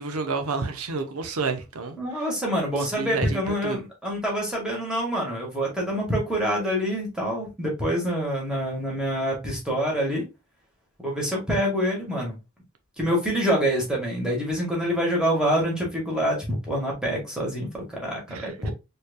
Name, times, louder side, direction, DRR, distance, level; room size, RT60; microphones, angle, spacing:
voice 1, 0.0-2.3 2.8-3.8 18.3-18.7, right 4 dB, 85° right, 0.8 m, -30 dB
voice 2, 2.0-10.2 11.0-12.4 13.0-18.7, equal, 5° right, 1.6 m, -26 dB
4.5 x 3.3 x 2.2 m
head